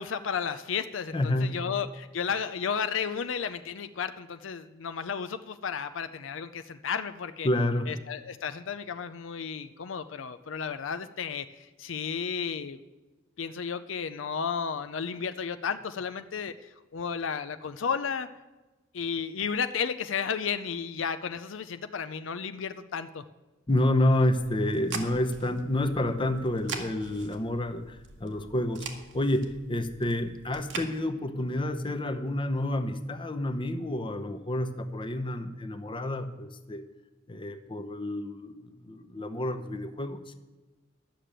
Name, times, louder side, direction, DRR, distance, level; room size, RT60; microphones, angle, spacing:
voice 1, 0.0-7.5 7.9-12.8 13.4-18.3 18.9-23.2, left 6 dB, 70° left, 10 dB, 0.5 m, -33 dB
voice 2, 1.1-1.6 7.4-7.9 23.7-28.9 29.1-36.8 37.3-40.2, left 1 dB, 25° left, 8 dB, 0.8 m, -29 dB
sound 1, 24.4-30.9, right 5 dB, 65° right, 1.5 m, -43 dB
12.0 x 6.7 x 8.9 m, 1.2 s
head